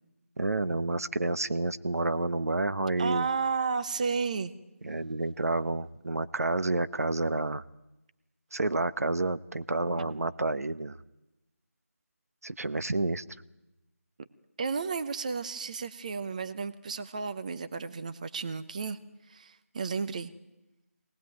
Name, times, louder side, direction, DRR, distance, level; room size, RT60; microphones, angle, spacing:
voice 1, 0.4-3.3 4.8-7.6 8.5-11.0 12.4-13.2, right 2 dB, 80° right, 14 dB, 1.0 m, -29 dB
voice 2, 3.0-4.5 14.6-19.0 19.3-20.3, right 5 dB, 30° right, 12 dB, 0.8 m, -32 dB
24.0 x 19.0 x 9.3 m, 0.98 s
figure-of-eight pair, 170°, 8 cm